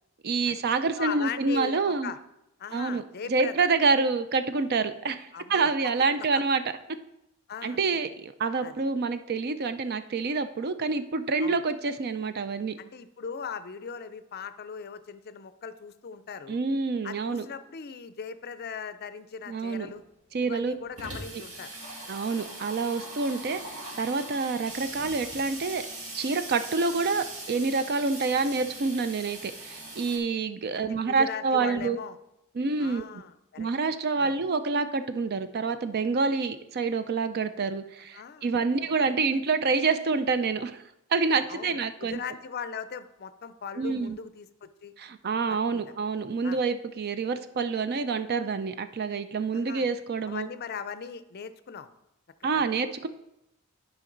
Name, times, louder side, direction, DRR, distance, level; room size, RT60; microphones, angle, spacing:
voice 1, 0.2-2.1 2.7-3.0 3.3-6.6 7.6-12.8 16.5-17.5 19.5-19.9 20.3-20.7 22.1-25.8 26.1-32.0 32.5-33.0 33.6-40.8 41.1-42.2 43.8-44.2 45.0-50.5 52.4-53.1, right 4 dB, 50° right, 11 dB, 0.5 m, -27 dB
voice 2, 1.0-2.2 2.6-3.6 5.3-5.9 6.2-6.4 7.5-7.8 8.6-8.7 11.4-11.6 12.8-16.6 17.0-20.0 20.4-21.7 30.8-32.2 32.8-33.7 34.2-34.3 38.1-38.5 38.8-39.0 41.5-44.9 45.5-45.9 46.4-46.6 49.5-49.9 50.3-52.0 52.4-52.7, left 6 dB, 50° left, 13 dB, 0.5 m, -39 dB
Water tap faucet / Sink (filling or washing), 19.6-19.7 19.9-20.0 20.3-30.2, right 2 dB, 85° right, 2.2 m, -41 dB
11.5 x 5.2 x 3.9 m, 0.85 s
head